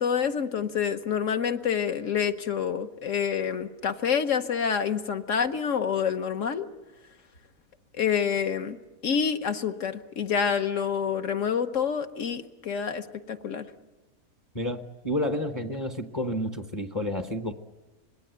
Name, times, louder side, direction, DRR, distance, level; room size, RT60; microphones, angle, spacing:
voice 1, 0.0-6.7 7.9-8.8 9.0-13.7, left 7 dB, 60° left, 7 dB, 1.3 m, -27 dB
voice 2, 14.5-17.5, left 1 dB, 25° left, 6 dB, 0.8 m, -30 dB
26.0 x 20.0 x 8.0 m, 1.2 s
omnidirectional pair, 1.6 m